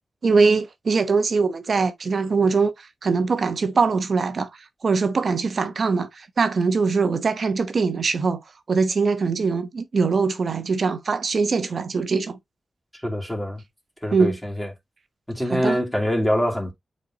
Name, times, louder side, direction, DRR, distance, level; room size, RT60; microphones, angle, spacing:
voice 1, 0.2-4.5 4.8-8.4 8.7-12.4 14.1-14.4 15.5-15.8, right 4 dB, 60° right, 1.0 m, -22 dB
voice 2, 13.0-13.6 14.0-14.7 15.3-16.7, equal, 5° left, 2.9 m, -24 dB
8.0 x 4.3 x 2.9 m
wide cardioid pair, 95°, 0 cm